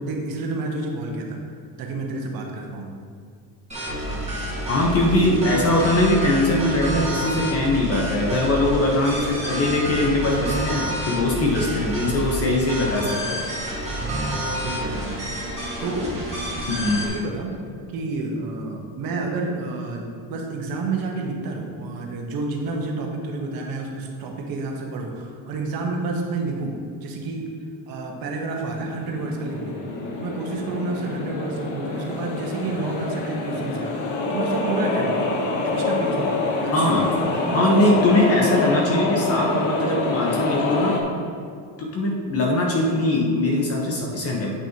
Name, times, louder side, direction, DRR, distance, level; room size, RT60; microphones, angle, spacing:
voice 1, 0.0-1.4 1.8-2.9 4.0-4.3 13.9-15.3 15.8-16.1 17.0-17.6 17.9-27.5 27.9-29.8 30.2-35.4 35.6-36.9 37.3-37.6 39.0-39.2 39.5-39.7, right 3 dB, 60° right, 1 dB, 1.3 m, -30 dB
sound 1, 3.7-17.1, right 1 dB, 15° right, 1.8 m, -29 dB
voice 2, 4.7-13.4 16.7-17.0 36.7-37.1 37.5-41.0 41.8-44.5, left 1 dB, 35° left, 0 dB, 1.1 m, -21 dB
sound 2, 28.6-41.0, left 2 dB, 85° left, 1.2 m, -26 dB
8.3 x 6.0 x 2.9 m, 2.2 s
cardioid pair, 135°, 40 cm